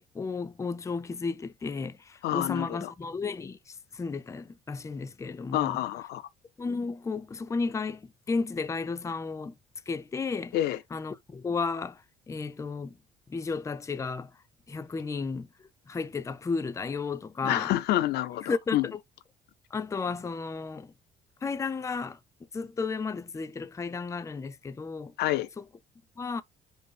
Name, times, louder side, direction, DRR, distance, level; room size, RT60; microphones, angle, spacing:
voice 1, 0.0-5.8 6.6-9.5 9.9-10.5 10.9-13.0 13.3-14.3 14.7-17.7 18.5-19.0 19.7-20.9 21.4-22.2 22.5-25.1 25.6-25.7 26.2-26.4, left 4 dB, 20° left, 0.5 m, -33 dB
voice 2, 2.2-2.9 5.5-6.3 10.5-10.8 17.4-18.9 25.2-25.5, left 14 dB, 75° left, 0.5 m, -28 dB
5.2 x 2.0 x 4.8 m
cardioid pair, 110°, 17 cm